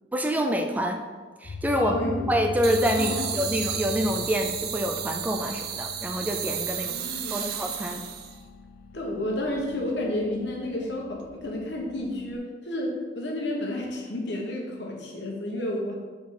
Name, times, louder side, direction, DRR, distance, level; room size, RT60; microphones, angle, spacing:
voice 1, 0.1-1.0 1.4-2.0 2.3-6.9 7.3-8.0, equal, 10° right, 4 dB, 0.4 m, -26 dB
sound 1, 1.4-12.4, left 3 dB, 55° left, 0.4 m, -41 dB
voice 2, 1.8-2.3 3.0-3.3 6.7-7.5 8.9-15.9, left 1 dB, 75° left, -1 dB, 1.3 m, -31 dB
sound 2, 2.6-8.4, right 9 dB, 65° right, 0.6 m, -33 dB
6.1 x 4.6 x 4.2 m, 1.4 s
head